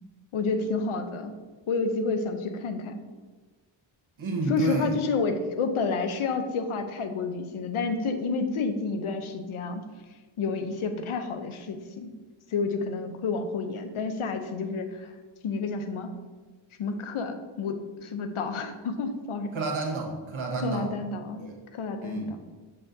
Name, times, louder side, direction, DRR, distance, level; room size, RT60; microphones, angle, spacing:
voice 1, 0.3-1.3 1.7-3.0 4.5-9.8 10.4-12.1 12.5-15.1 15.4-16.1 16.8-19.5 20.6-22.4, left 4 dB, 85° left, 8 dB, 0.7 m, -30 dB
voice 2, 4.2-4.9 19.5-20.9 21.4-21.6 22.0-22.4, right 3 dB, 70° right, 1 dB, 1.4 m, -30 dB
6.7 x 5.8 x 2.7 m, 1.3 s
cardioid pair, 55°, 49 cm